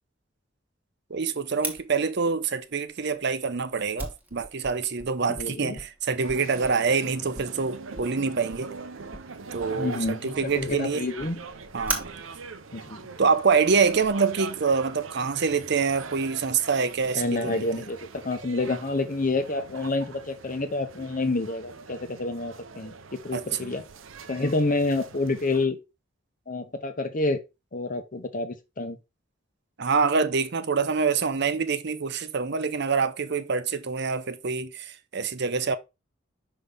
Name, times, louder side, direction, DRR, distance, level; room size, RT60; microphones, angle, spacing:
voice 1, 1.1-8.7 9.5-11.1 11.7-12.2 13.2-17.7 23.3-23.7 29.8-35.8, right 5 dB, 60° right, 0.7 m, -26 dB
Fire, 1.6-14.1, right 1 dB, 10° right, 1.4 m, -41 dB
voice 2, 5.3-5.8 9.7-11.4 12.7-13.1 17.1-18.0 18.2-23.8 24.3-25.8 26.5-27.4 27.7-29.0, left 2 dB, 40° left, 0.9 m, -28 dB
sound 1, 6.2-25.7, right 4 dB, 90° right, 0.7 m, -43 dB
5.5 x 5.5 x 3.4 m
head